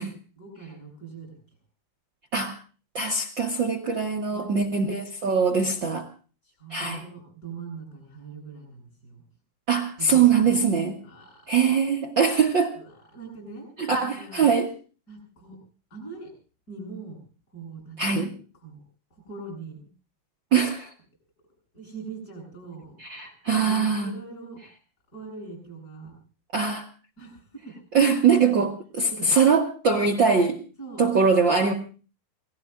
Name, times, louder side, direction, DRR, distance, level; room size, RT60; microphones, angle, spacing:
voice 1, 0.0-1.3 4.3-4.6 6.4-9.2 10.0-10.6 11.0-11.4 12.7-13.7 14.0-14.5 15.1-15.6 15.9-16.3 16.7-17.2 17.5-18.2 18.5-18.8 19.1-19.8 21.7-22.9 23.5-24.6 25.1-26.1 27.2-27.7 28.4-28.6 29.1-29.4 30.8-31.0, right 4 dB, 20° left, 0 dB, 8.5 m, -42 dB
voice 2, 2.9-6.1 6.7-7.0 9.7-11.0 11.5-12.7 13.8-14.7 18.0-18.3 20.5-20.9 23.0-24.1 26.5-26.9 27.9-28.7 29.0-30.6 31.0-31.7, right 5 dB, 85° right, 1 dB, 1.0 m, -22 dB
29.0 x 19.0 x 2.6 m, 0.37 s
omnidirectional pair, 4.4 m